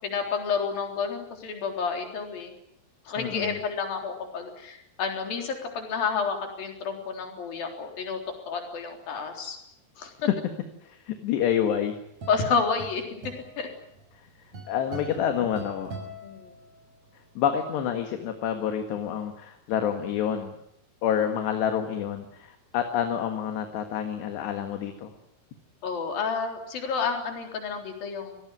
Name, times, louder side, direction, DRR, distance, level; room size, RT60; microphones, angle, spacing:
voice 1, 0.0-2.5 3.1-8.2 8.5-9.6 10.0-10.3 12.3-13.0 13.6-13.7 16.2-16.5 25.8-28.4, left 5 dB, 50° left, 3 dB, 5.4 m, -30 dB
voice 2, 3.2-3.6 10.8-12.0 14.7-15.9 17.4-20.6 21.0-25.1, left 9 dB, 70° left, 6 dB, 3.7 m, -28 dB
sound 1, 11.6-17.0, right 2 dB, 35° right, 7.7 m, -43 dB
26.0 x 18.5 x 9.4 m, 0.78 s
omnidirectional pair, 5.5 m